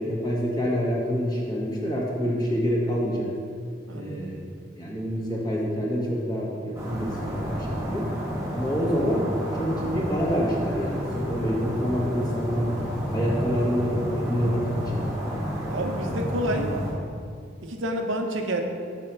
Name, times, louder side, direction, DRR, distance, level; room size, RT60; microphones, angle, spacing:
voice 1, 0.0-3.3 3.9-4.4 4.7-8.0 8.5-9.3 9.6-12.7 13.1-15.0, equal, 20° left, -4 dB, 1.4 m, -27 dB
voice 2, 3.9-4.3 15.7-16.8 17.6-18.6, right 1 dB, 85° right, 4 dB, 0.9 m, -29 dB
sound 1, 6.7-16.9, equal, 15° right, 1.5 m, -30 dB
6.9 x 4.5 x 6.7 m, 2.2 s
head